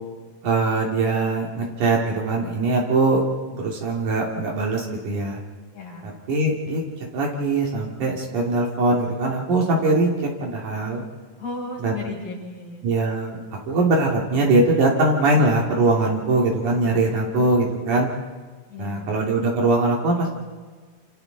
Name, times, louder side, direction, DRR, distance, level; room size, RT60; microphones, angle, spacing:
voice 1, 0.4-3.2 3.5-5.4 6.0-11.0 11.8-11.9 12.8-18.1 18.8-20.3, right 2 dB, 65° right, -1 dB, 3.8 m, -22 dB
voice 2, 5.7-6.1 11.4-12.8 18.7-19.1, left 3 dB, 90° left, -3 dB, 8.0 m, -34 dB
30.0 x 26.5 x 3.9 m, 1.4 s
omnidirectional pair, 3.8 m